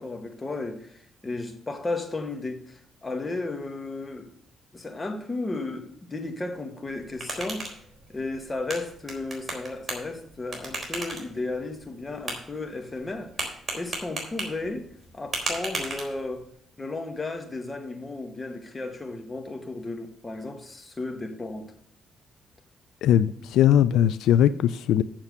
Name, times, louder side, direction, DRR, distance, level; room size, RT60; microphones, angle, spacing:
voice 1, 0.0-4.3 4.7-7.7 8.1-13.3 13.7-14.9 15.1-16.5 16.8-21.7, left 2 dB, 25° left, 1.8 m, -34 dB
sound 1, 6.9-16.5, right 2 dB, 25° right, 3.8 m, -37 dB
voice 2, 23.0-25.0, left 10 dB, 85° left, 0.4 m, -20 dB
7.5 x 7.1 x 6.6 m
cardioid pair, 90°, 0 cm